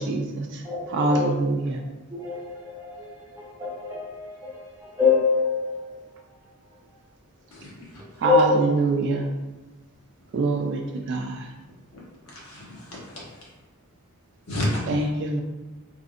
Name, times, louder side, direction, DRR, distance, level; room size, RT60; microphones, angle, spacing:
voice 1, 0.1-0.5 0.9-1.8 8.2-9.2 10.3-10.8 11.1-11.4 14.9-15.4, right 3 dB, 55° right, 0.3 m, -24 dB
voice 2, 0.6-1.3 2.1-6.0 8.2-8.6, left 5 dB, 15° right, 0.7 m, -26 dB
voice 3, 7.5-8.0 11.9-13.3 14.5-15.1, left 1 dB, 80° left, 1.1 m, -32 dB
3.4 x 2.6 x 2.4 m
head